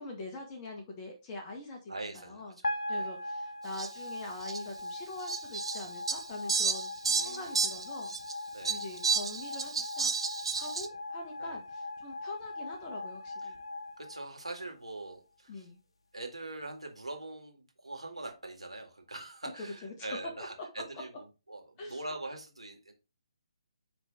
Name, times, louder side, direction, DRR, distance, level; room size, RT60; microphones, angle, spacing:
voice 1, 0.0-2.5 2.9-6.9 7.2-8.1 8.7-10.1 10.5-13.6 15.5-15.8 19.8-19.9 21.8-22.0, left 2 dB, 20° left, 1 dB, 1.4 m, -44 dB
voice 2, 1.9-3.1 7.0-7.7 8.5-8.8 11.4-11.6 13.4-13.6 14.0-15.7 16.1-22.9, right 2 dB, 80° right, 3 dB, 2.0 m, -43 dB
sound 1, 2.6-14.9, left 2 dB, 60° left, 0.9 m, -40 dB
Fowl, 3.8-3.9 4.4-4.6 5.3-8.3 8.6-10.9, right 5 dB, 60° right, 0.9 m, -31 dB
9.6 x 3.4 x 3.7 m, 0.30 s
figure-of-eight pair, 140°, 3 cm